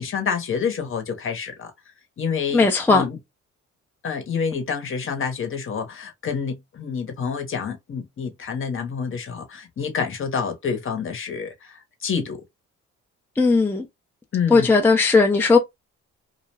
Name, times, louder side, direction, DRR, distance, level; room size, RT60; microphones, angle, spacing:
voice 1, 0.0-1.7 2.2-3.2 4.0-12.4 14.3-14.7, left 6 dB, 45° left, 0.9 m, -28 dB
voice 2, 2.5-3.0 13.4-13.8 14.5-15.6, left 4 dB, 5° left, 0.5 m, -17 dB
2.3 x 2.1 x 3.1 m
cardioid pair, 90°, 30 cm